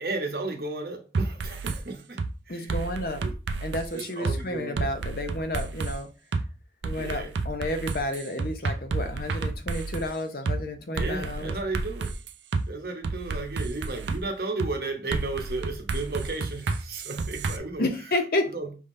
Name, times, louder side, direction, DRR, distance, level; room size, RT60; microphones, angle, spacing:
voice 1, 0.0-2.2 2.5-2.8 3.2-3.3 3.9-4.9 6.9-7.3 10.9-12.1 12.7-17.9 18.5-18.7, right 3 dB, 55° right, 0.9 m, -34 dB
sound 1, 1.1-1.8 2.2-2.3 2.7-4.4 4.8-5.9 6.3-6.4 6.8-10.1 10.5-10.6 11.0-12.6 13.0-14.2 14.6-14.7 15.1-17.6, right 3 dB, 80° right, 0.4 m, -30 dB
voice 2, 2.5-3.2 3.6-6.1 6.8-11.5 17.8-18.5, left 1 dB, 55° left, 0.7 m, -31 dB
5.4 x 3.5 x 2.6 m
head